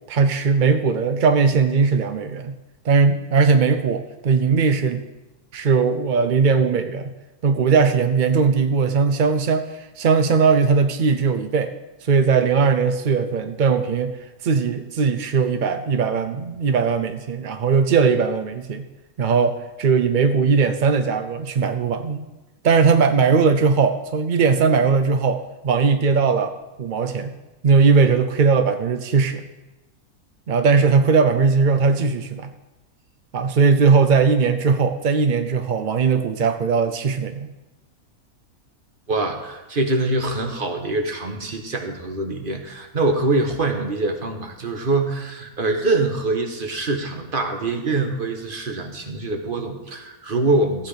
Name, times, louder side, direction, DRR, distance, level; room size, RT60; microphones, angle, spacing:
voice 1, 0.1-2.6 2.8-5.1 5.5-7.1 7.4-11.7 12.0-14.2 14.4-18.9 19.2-22.2 22.6-27.3 27.6-29.4 30.5-32.5 33.3-37.5, right 5 dB, 60° right, 9 dB, 0.5 m, -19 dB
voice 2, 39.1-50.9, right 2 dB, 35° right, 4 dB, 1.4 m, -24 dB
15.0 x 8.4 x 5.0 m, 1.1 s
omnidirectional pair, 1.6 m